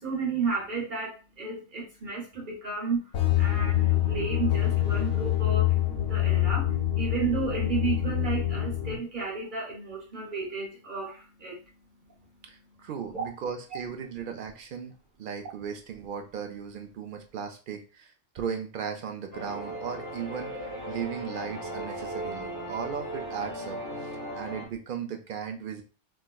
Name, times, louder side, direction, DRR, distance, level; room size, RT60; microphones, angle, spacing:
voice 1, 0.0-5.8 6.1-11.6 12.7-12.8 13.1-13.3, right 4 dB, 45° right, -2 dB, 1.0 m, -33 dB
sound 1, 3.1-9.0, left 12 dB, 75° left, 1.0 m, -25 dB
voice 2, 12.4-14.9 15.2-20.5 20.9-25.8, right 7 dB, 60° right, 5 dB, 0.5 m, -37 dB
sound 2, 19.3-24.7, right 1 dB, 15° right, 0.8 m, -37 dB
4.5 x 2.1 x 2.2 m, 0.33 s
omnidirectional pair, 1.3 m